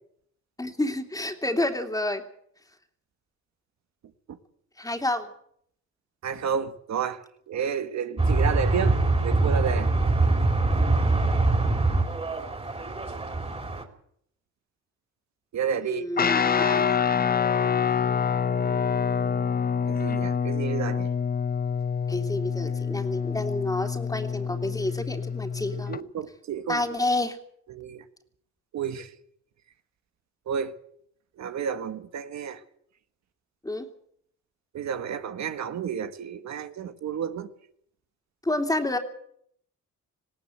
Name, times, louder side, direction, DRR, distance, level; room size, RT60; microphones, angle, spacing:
voice 1, 0.6-2.2 4.8-5.3 15.8-17.0 22.1-25.9 26.7-27.4 33.6-33.9 38.4-39.0, left 2 dB, 10° left, 3.0 m, -29 dB
voice 2, 6.2-9.9 15.5-16.1 19.9-21.1 25.7-26.8 27.7-28.0 28.7-29.1 30.5-30.7 31.4-32.6 34.7-37.5, right 7 dB, 65° right, 1.6 m, -31 dB
sound 1, 8.2-13.8, right 2 dB, 20° right, 3.8 m, -23 dB
Guitar, 16.2-26.0, left 6 dB, 30° left, 0.8 m, -26 dB
19.5 x 17.5 x 8.0 m
cardioid pair, 90°, 30 cm